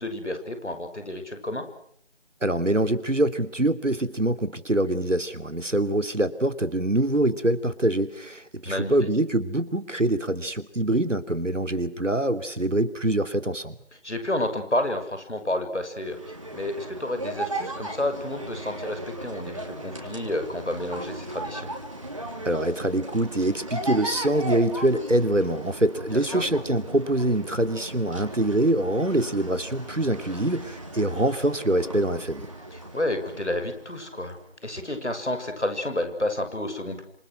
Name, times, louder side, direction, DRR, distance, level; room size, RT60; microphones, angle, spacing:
voice 1, 0.0-1.6 8.7-8.9 14.0-21.7 26.1-26.4 32.7-37.0, left 1 dB, 70° left, 7 dB, 7.2 m, -30 dB
voice 2, 2.4-13.7 22.4-32.5, right 1 dB, 85° right, 10 dB, 3.1 m, -24 dB
sound 1, 16.0-34.5, right 1 dB, 25° right, 3.7 m, -37 dB
29.5 x 27.0 x 6.3 m, 0.67 s
figure-of-eight pair, 175°, 36 cm